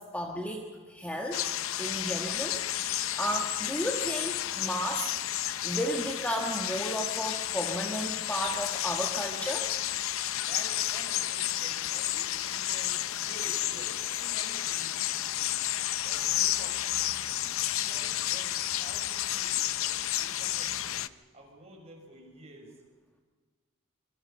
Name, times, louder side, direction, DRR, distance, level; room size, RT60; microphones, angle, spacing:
voice 1, 0.0-5.1 5.6-9.7, equal, 5° left, 1 dB, 1.6 m, -34 dB
sound 1, 1.3-21.1, left 13 dB, 65° left, 0.7 m, -31 dB
voice 2, 10.4-15.6 16.0-17.5 17.8-21.0 21.3-22.8, right 1 dB, 30° right, 0 dB, 5.5 m, -50 dB
26.0 x 23.5 x 5.6 m, 1.4 s
head